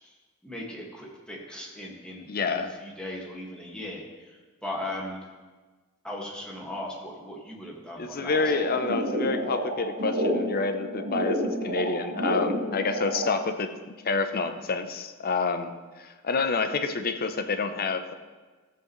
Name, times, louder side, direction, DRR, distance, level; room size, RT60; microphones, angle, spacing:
voice 1, 0.4-5.2 6.0-8.6, left 1 dB, 5° left, -4 dB, 1.8 m, -38 dB
voice 2, 2.3-2.7 8.0-13.7 14.0-18.1, left 4 dB, 45° left, 8 dB, 0.7 m, -28 dB
sound 1, 8.3-13.3, equal, 70° right, 2.1 m, -30 dB
14.5 x 7.9 x 3.2 m, 1.3 s
head